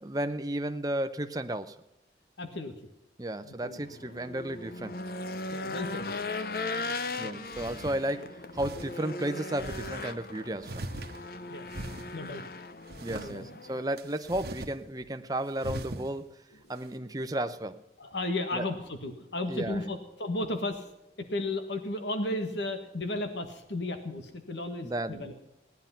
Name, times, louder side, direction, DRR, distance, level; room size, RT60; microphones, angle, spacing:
voice 1, 0.0-1.7 3.2-4.9 7.2-10.8 13.0-16.3 16.7-17.8 18.5-18.7 19.5-19.9 24.8-25.3, right 1 dB, 20° right, 9 dB, 0.7 m, -33 dB
voice 2, 2.4-2.7 3.4-3.8 5.5-6.1 7.2-7.4 11.5-11.7 12.1-12.4 13.2-13.5 18.0-20.9 21.3-25.3, left 2 dB, 85° left, 7 dB, 1.6 m, -34 dB
Race car auto racing / Engine, 3.7-13.8, left 3 dB, 55° left, 0.8 m, -38 dB
sound 1, 6.9-7.0 7.5-8.0 8.5-8.9 9.6-10.0 10.6-11.4 11.7-12.1 12.9-13.3 14.0-14.7 15.0-15.1 15.6-16.1, right 1 dB, 65° right, 1.2 m, -39 dB
17.5 x 10.5 x 5.7 m, 0.91 s
head